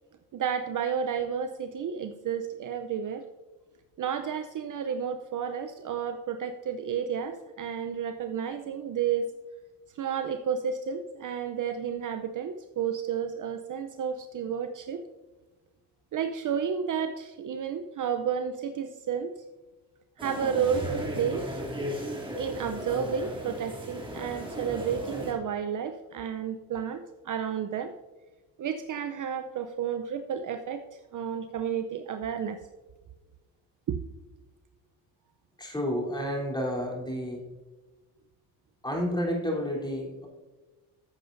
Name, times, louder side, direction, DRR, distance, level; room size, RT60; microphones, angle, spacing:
voice 1, 0.3-3.2 4.0-9.3 9.9-15.0 16.1-19.4 20.2-21.5 22.3-27.9 28.6-32.6 33.9-34.0, right 7 dB, 45° right, 8 dB, 0.7 m, -31 dB
sound 1, 20.2-25.3, equal, 10° right, 2.9 m, -36 dB
voice 2, 35.6-37.5 38.8-40.3, equal, 10° left, -2 dB, 3.5 m, -30 dB
14.5 x 7.6 x 2.7 m, 1.2 s
supercardioid pair, 85°, 44 cm